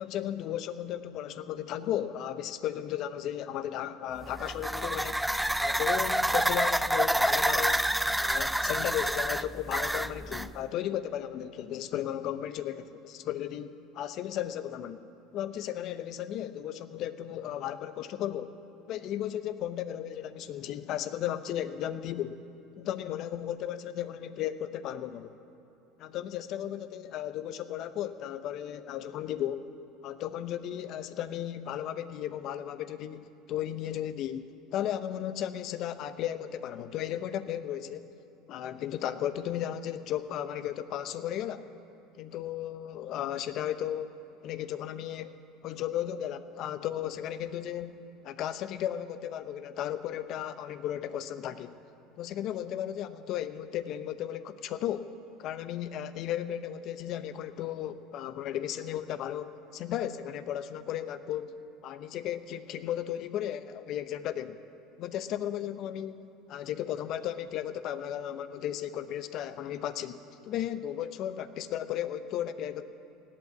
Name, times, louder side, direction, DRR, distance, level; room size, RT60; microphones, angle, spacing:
voice 1, 0.0-5.2 5.6-7.9 8.2-15.0 15.3-18.6 18.9-22.4 22.8-25.4 26.0-29.6 30.0-38.0 38.5-41.7 42.2-44.1 44.4-45.4 45.6-51.7 52.2-55.1 55.4-61.5 61.8-64.6 65.0-66.2 66.5-72.8, left 11 dB, 55° left, 12 dB, 0.7 m, -35 dB
sound 1, 4.2-10.5, right 1 dB, 5° right, 0.3 m, -28 dB
17.5 x 8.3 x 8.2 m, 2.9 s
supercardioid pair, 105°, 0 cm